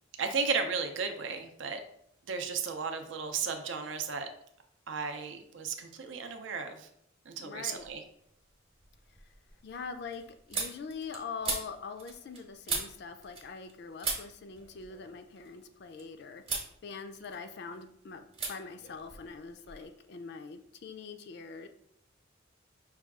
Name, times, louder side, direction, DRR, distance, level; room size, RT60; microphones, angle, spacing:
voice 1, 0.2-1.8 2.3-4.3 4.9-6.9 7.3-8.0, right 5 dB, 65° right, 6 dB, 0.5 m, -34 dB
voice 2, 7.4-7.9 9.6-16.4 16.8-21.7, left 5 dB, 55° left, 7 dB, 0.4 m, -43 dB
sound 1, 7.8-8.3 8.7-13.7 14.0-16.0 16.4-16.7 17.1-17.8 18.3-18.5 18.8-19.8, right 4 dB, 30° right, 0.9 m, -39 dB
5.5 x 2.3 x 3.5 m, 0.72 s
head